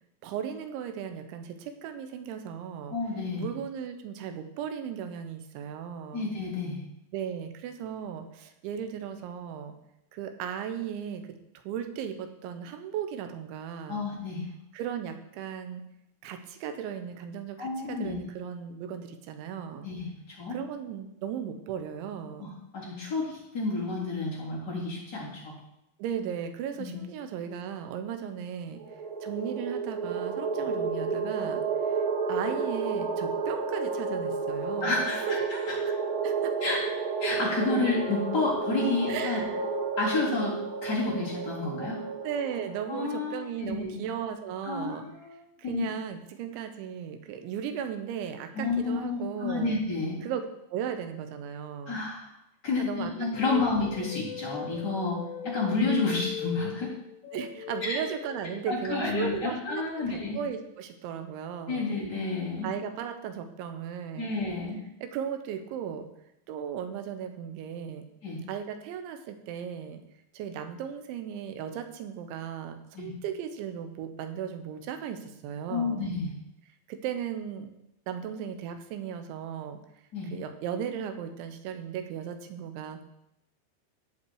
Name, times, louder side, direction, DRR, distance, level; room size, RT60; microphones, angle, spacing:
voice 1, 0.2-3.0 3.4-6.3 7.1-9.7 10.1-11.2 11.6-14.1 14.7-15.8 16.2-19.9 20.5-22.5 26.0-28.8 29.2-31.6 31.9-32.0 32.3-35.5 36.2-36.6 39.1-39.6 42.2-45.1 45.6-49.8 50.2-52.0 52.8-53.1 53.5-53.8 57.3-62.0 62.6-64.3 65.0-66.1 66.5-68.0 68.5-70.0 70.3-76.1 76.9-77.7 78.1-79.8 80.3-83.0, right 8 dB, 85° right, 7 dB, 3.3 m, -36 dB
voice 2, 2.9-3.5 6.1-6.8 13.9-14.5 17.6-18.2 19.8-20.1 20.4-20.6 22.7-23.3 23.5-25.5 26.8-26.9 34.8-35.4 36.6-36.8 37.2-39.4 40.0-40.6 40.8-42.0 42.9-44.0 44.6-45.3 45.6-45.8 48.5-50.2 51.9-52.3 52.6-55.2 55.4-56.9 57.8-58.0 58.7-60.4 61.7-62.7 64.2-64.8 68.2-68.4 72.9-73.1 75.7-76.3 80.1-80.3, left 3 dB, 25° left, -6 dB, 3.6 m, -30 dB
sound 1, 28.8-43.1, right 4 dB, 65° right, 5.5 m, -31 dB
sound 2, 53.2-59.4, left 7 dB, 75° left, 2.5 m, -40 dB
17.5 x 5.9 x 4.7 m, 0.84 s
omnidirectional pair, 5.3 m